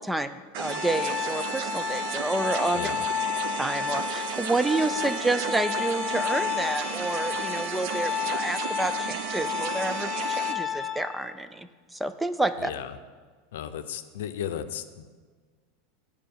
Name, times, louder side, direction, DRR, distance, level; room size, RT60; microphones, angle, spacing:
voice 1, 0.0-2.9 3.6-12.7, right 2 dB, 5° right, 11 dB, 0.3 m, -29 dB
sound 1, 0.5-10.5, right 8 dB, 60° right, 0.6 m, -34 dB
Organ, 0.6-11.3, left 7 dB, 15° left, 0.8 m, -31 dB
voice 2, 2.7-3.0 12.6-12.9 13.5-15.1, left 9 dB, 85° left, 10 dB, 0.6 m, -35 dB
7.6 x 4.9 x 6.9 m, 1.5 s
supercardioid pair, 150°, 0 cm